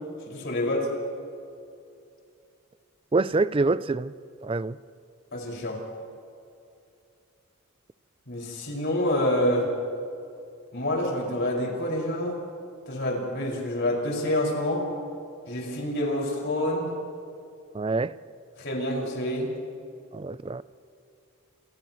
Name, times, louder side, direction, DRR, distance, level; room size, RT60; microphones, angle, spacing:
voice 1, 0.3-0.9 5.3-5.8 8.3-9.7 10.7-12.4 12.9-14.9 15.5-16.9 18.6-19.5, left 1 dB, 50° left, 5.8 m, -27 dB
voice 2, 3.1-4.1 4.4-4.8 17.7-18.2 20.1-20.6, right 3 dB, 25° right, 0.4 m, -25 dB
29.5 x 27.5 x 3.2 m
head